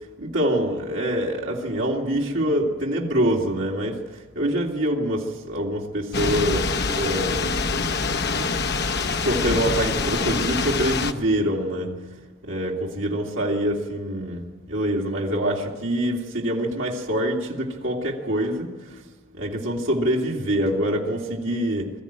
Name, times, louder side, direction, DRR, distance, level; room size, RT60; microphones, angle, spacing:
voice 1, 0.2-7.5 8.3-8.5 9.2-11.9 12.4-19.0 19.3-21.9, equal, 65° right, -1 dB, 2.8 m, -25 dB
Thunder / Rain, 6.1-11.1, left 4 dB, 50° left, 1.0 m, -25 dB
22.0 x 13.5 x 9.0 m, 1.3 s
head